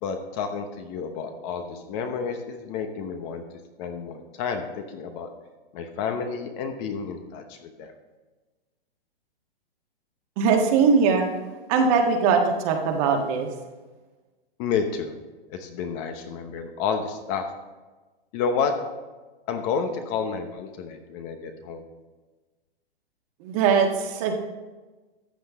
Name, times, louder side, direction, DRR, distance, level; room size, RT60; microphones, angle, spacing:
voice 1, 0.0-3.4 3.8-5.3 5.7-7.9 14.6-15.1 15.5-17.4 18.3-18.7 19.5-21.8, left 6 dB, 30° left, 6 dB, 1.0 m, -30 dB
voice 2, 10.4-11.3 11.7-13.5 23.4-24.4, right 5 dB, 35° right, 3 dB, 1.6 m, -21 dB
13.5 x 7.7 x 3.6 m, 1.2 s
hypercardioid pair, 145°, 30 cm